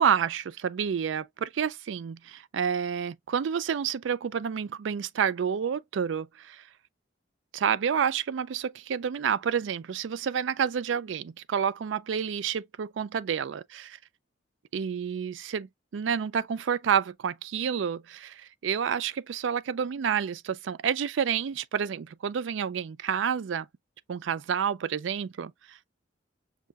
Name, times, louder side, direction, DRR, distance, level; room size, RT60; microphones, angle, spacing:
voice 1, 0.0-6.6 7.5-14.0 14.7-23.7 24.1-25.8, right 7 dB, 85° right, 0.4 m, -29 dB
6.4 x 2.7 x 2.3 m
head